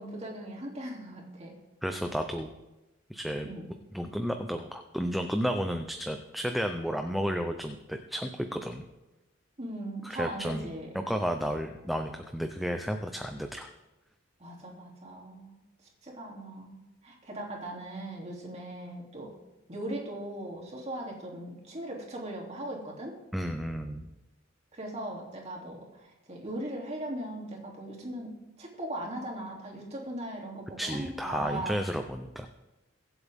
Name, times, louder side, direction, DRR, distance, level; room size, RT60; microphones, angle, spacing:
voice 1, 0.0-1.5 3.4-3.7 9.6-10.9 14.4-15.6 16.0-16.8 17.0-19.3 19.7-23.2 24.7-31.8, right 1 dB, 35° right, -2 dB, 2.9 m, -39 dB
voice 2, 1.8-2.5 3.1-3.5 3.9-8.8 10.0-13.7 23.3-24.1 30.8-32.5, equal, ahead, 5 dB, 0.6 m, -32 dB
23.0 x 8.0 x 3.6 m, 1.0 s
head